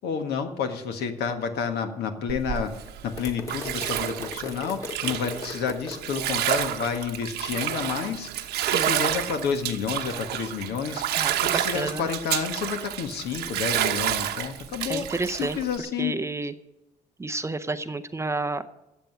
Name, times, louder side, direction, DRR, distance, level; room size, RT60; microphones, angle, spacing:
voice 1, 0.0-16.2, left 6 dB, 75° left, 6 dB, 1.6 m, -30 dB
Bathtub (filling or washing), 2.3-15.8, right 11 dB, 75° right, 1.1 m, -29 dB
sound 1, 3.2-6.2, left 3 dB, 20° left, 1.5 m, -38 dB
voice 2, 8.6-9.0 11.2-12.0 14.9-15.6 16.0-16.5 17.2-18.6, right 3 dB, 15° right, 10 dB, 0.6 m, -30 dB
13.5 x 7.8 x 8.0 m, 0.94 s
cardioid pair, 110°, 17 cm